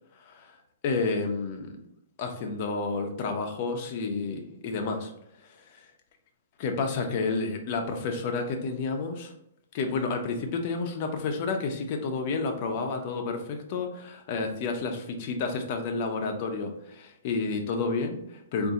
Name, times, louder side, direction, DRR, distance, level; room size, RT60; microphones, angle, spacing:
voice 1, 0.8-1.8 2.2-5.1 6.6-9.3 9.7-18.7, left 4 dB, 35° left, 3 dB, 0.6 m, -30 dB
4.0 x 2.6 x 3.7 m, 0.77 s
hypercardioid pair, 165°, 0 cm